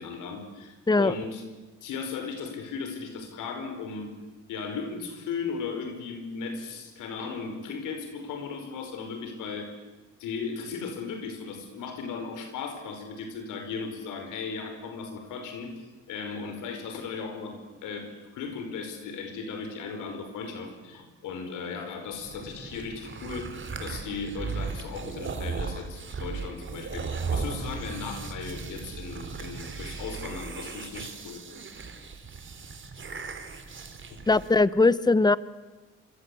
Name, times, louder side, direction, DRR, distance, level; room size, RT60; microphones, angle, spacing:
voice 1, 0.0-1.4 1.8-4.1 4.5-9.7 10.2-17.6 17.8-23.5 23.8-31.4, left 5 dB, 90° left, 6 dB, 5.2 m, -36 dB
sound 1, 22.2-34.6, right 5 dB, 40° right, 3.7 m, -37 dB
voice 2, 34.3-35.4, left 3 dB, 15° left, 17 dB, 0.9 m, -20 dB
27.0 x 24.0 x 8.6 m, 1.2 s
cardioid pair, 90°, 30 cm